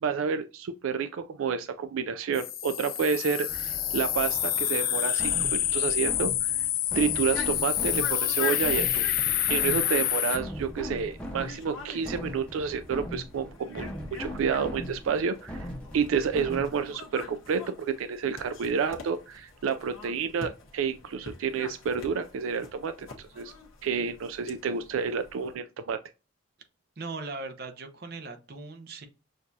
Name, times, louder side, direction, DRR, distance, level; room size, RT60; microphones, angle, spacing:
voice 1, 0.0-6.6 6.9-9.1 9.5-15.7 15.9-23.5 23.8-26.0, right 6 dB, 90° right, 0.3 m, -30 dB
sound 1, 2.3-10.4, left 12 dB, 45° left, 0.4 m, -28 dB
sound 2, 3.5-17.0, equal, 5° left, 0.6 m, -40 dB
sound 3, 6.5-25.5, left 5 dB, 90° left, 1.0 m, -44 dB
voice 2, 27.0-29.1, right 3 dB, 50° right, 0.8 m, -39 dB
6.3 x 2.4 x 2.7 m
head